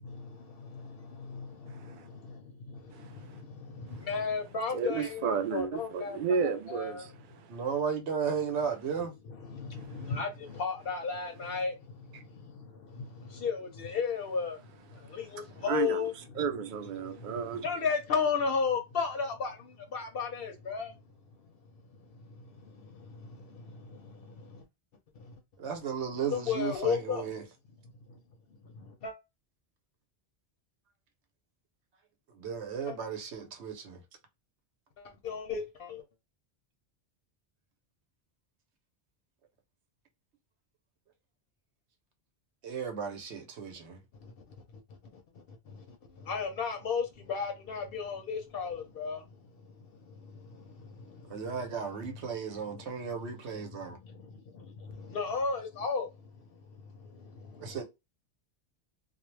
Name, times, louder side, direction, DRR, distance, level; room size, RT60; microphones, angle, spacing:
voice 1, 4.1-6.1 6.7-7.0 10.1-10.3 10.6-11.7 13.4-14.5 15.6-16.1 17.6-19.5 19.9-20.9 26.5-27.2 29.0-29.1 35.2-35.6 46.3-47.0 47.3-49.2 55.1-56.1, left 5 dB, 65° left, 0.7 m, -31 dB
voice 2, 4.7-7.1 15.7-16.0 16.4-17.6, right 6 dB, 60° right, 0.6 m, -31 dB
voice 3, 7.5-9.1 25.6-27.4 32.3-34.0 42.6-44.0 51.3-54.0 57.6-57.8, right 6 dB, 80° right, 1.0 m, -34 dB
2.3 x 2.0 x 3.1 m
omnidirectional pair, 1.1 m